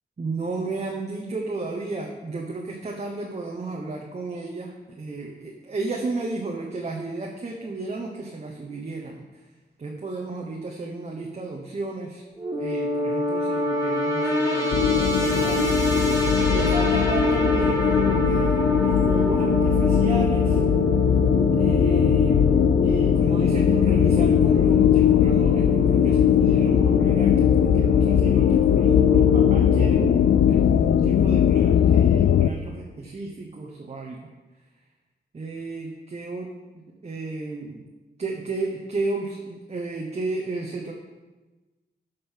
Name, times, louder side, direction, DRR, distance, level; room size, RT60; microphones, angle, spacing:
voice 1, 0.2-9.4 9.8-12.2 12.5-15.8 16.5-20.6 21.5-22.5 22.8-30.1 30.5-34.2 35.3-36.5 37.0-37.8 38.2-40.9, right 3 dB, 35° right, 0 dB, 1.1 m, -33 dB
sound 1, 12.4-30.0, equal, 15° right, 2.5 m, -26 dB
sound 2, 14.7-32.5, left 9 dB, 85° left, 0.4 m, -20 dB
12.5 x 5.4 x 5.7 m, 1.2 s
wide cardioid pair, 140°, 18 cm